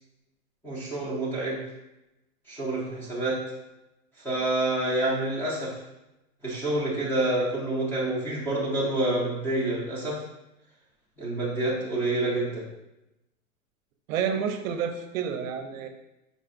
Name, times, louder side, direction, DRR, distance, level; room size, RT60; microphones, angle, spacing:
voice 1, 0.6-1.6 2.5-3.4 4.2-5.7 6.4-10.2 11.2-12.7, right 2 dB, 5° left, -7 dB, 0.5 m, -27 dB
voice 2, 14.1-15.9, right 7 dB, 70° right, 6 dB, 0.6 m, -29 dB
5.2 x 2.3 x 2.4 m, 0.92 s
hypercardioid pair, 140°, 42 cm